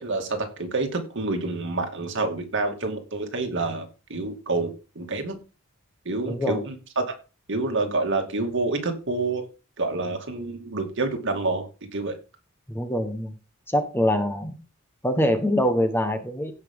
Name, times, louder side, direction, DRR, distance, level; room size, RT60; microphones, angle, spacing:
voice 1, 0.0-5.4 6.1-7.0 7.5-9.4 9.8-11.7 11.9-12.1, right 3 dB, 60° right, 4 dB, 2.4 m, -28 dB
voice 2, 6.3-6.6 12.7-13.3 13.7-14.6 15.0-16.5, equal, 10° left, 8 dB, 1.4 m, -24 dB
16.5 x 5.9 x 3.8 m, 0.31 s
head